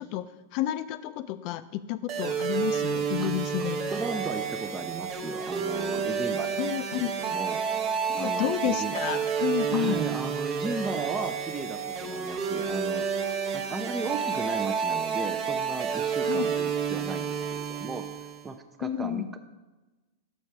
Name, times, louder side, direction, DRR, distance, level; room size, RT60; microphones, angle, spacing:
voice 1, 0.0-3.8 6.6-7.1 8.1-10.0 16.3-16.5 18.8-19.3, left 13 dB, 45° left, 13 dB, 0.3 m, -31 dB
sound 1, 2.1-18.5, right 6 dB, 40° right, 0.8 m, -30 dB
voice 2, 3.6-6.7 7.0-7.6 8.2-9.0 9.7-13.1 13.5-18.0 18.4-19.4, right 4 dB, 15° right, 8 dB, 0.5 m, -36 dB
6.2 x 5.3 x 5.8 m, 1.1 s
hypercardioid pair, 100°, 0 cm